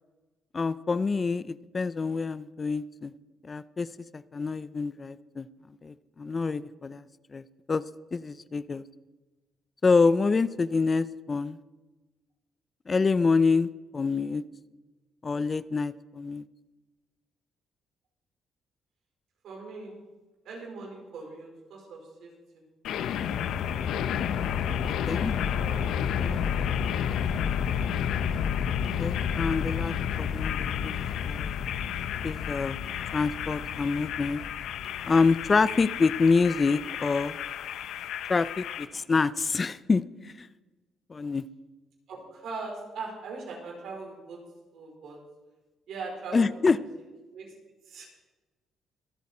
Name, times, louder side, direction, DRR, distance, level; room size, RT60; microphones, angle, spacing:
voice 1, 0.5-3.1 3.4-3.9 4.1-5.5 5.8-7.0 7.3-7.8 8.1-8.8 9.8-11.6 12.9-14.4 15.2-16.4 24.7-25.3 26.2-26.4 29.0-30.9 31.2-31.5 32.2-32.8 33.1-34.4 35.0-37.4 38.3-40.5 41.1-41.4 46.3-46.8, left 4 dB, 35° left, 16 dB, 0.5 m, -26 dB
voice 2, 19.4-20.0 20.4-22.6 24.4-25.2 25.5-27.3 42.1-44.5 44.7-45.2 45.9-46.8 47.3-47.5 47.9-48.1, right 3 dB, 75° right, -1 dB, 4.6 m, -41 dB
sound 1, 22.8-38.8, left 8 dB, 80° left, 0.9 m, -30 dB
24.5 x 8.2 x 4.3 m, 1.2 s
cardioid pair, 90°, 0 cm